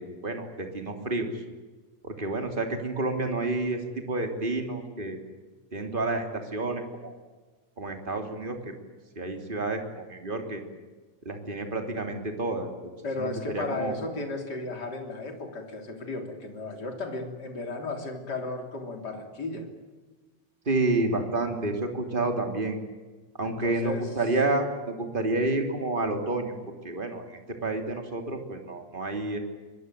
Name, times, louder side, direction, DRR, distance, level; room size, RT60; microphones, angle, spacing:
voice 1, 0.0-1.4 2.0-5.2 5.7-7.1 7.8-8.7 9.1-10.6 11.2-14.0 20.6-22.8 23.4-29.4, right 2 dB, 15° right, 5 dB, 2.1 m, -30 dB
voice 2, 13.0-19.7 23.4-24.1, left 3 dB, 25° left, 4 dB, 3.1 m, -34 dB
24.5 x 21.5 x 9.2 m, 1.3 s
omnidirectional pair, 5.6 m